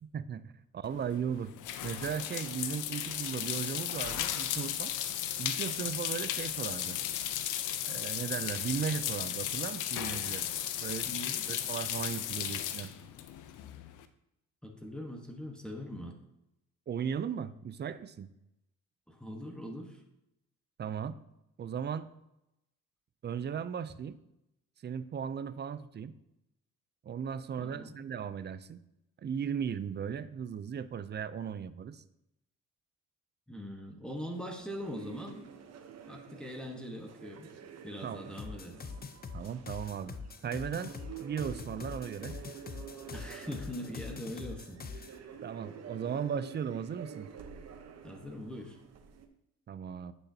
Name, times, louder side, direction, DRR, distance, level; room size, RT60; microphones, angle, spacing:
voice 1, 0.0-1.5 1.8-4.9 5.4-7.0 7.9-10.5 10.8-11.1 11.5-12.9 16.9-18.3 20.8-21.2 21.6-22.1 23.2-24.2 24.8-26.2 27.0-28.8 29.2-32.0 38.0-38.3 39.3-40.9 41.2-42.4 45.4-47.3 49.7-50.1, right 7 dB, 35° right, 14 dB, 0.5 m, -37 dB
sound 1, 0.8-14.0, left 11 dB, 80° left, 0.6 m, -35 dB
voice 2, 11.1-11.4 14.6-16.1 19.1-20.0 27.6-27.9 33.5-35.5 36.1-37.5 37.8-38.8 43.1-44.8 48.0-48.8, equal, 5° left, 1 dB, 1.3 m, -42 dB
sound 2, 34.3-49.3, right 7 dB, 60° right, 1.0 m, -49 dB
sound 3, 38.4-45.2, left 5 dB, 30° left, 0.6 m, -43 dB
9.8 x 6.3 x 2.8 m, 0.87 s
cardioid pair, 90°, 30 cm